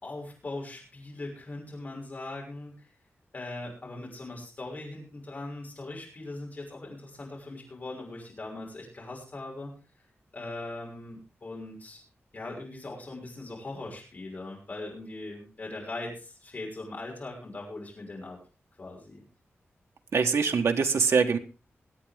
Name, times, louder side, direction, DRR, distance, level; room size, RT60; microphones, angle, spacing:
voice 1, 0.0-2.8 3.3-9.7 10.3-12.0 12.3-18.4 18.8-19.2, left 2 dB, 35° left, -1 dB, 6.2 m, -40 dB
voice 2, 20.1-21.4, right 5 dB, 85° right, 5 dB, 1.5 m, -23 dB
23.0 x 8.7 x 3.6 m, 0.34 s
wide cardioid pair, 180°, 5 cm